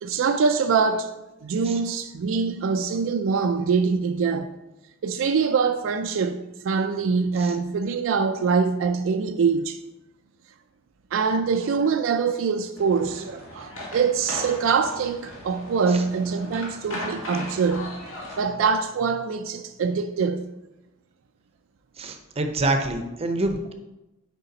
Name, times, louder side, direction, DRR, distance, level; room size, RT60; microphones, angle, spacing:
voice 1, 0.0-1.1 1.4-4.5 5.0-9.8 11.1-20.5, right 5 dB, 70° right, 0.3 m, -24 dB
sound 1, 12.8-18.4, left 1 dB, 85° left, 1.7 m, -38 dB
voice 2, 22.0-23.7, right 2 dB, 30° right, 0.6 m, -26 dB
6.6 x 5.0 x 3.9 m
head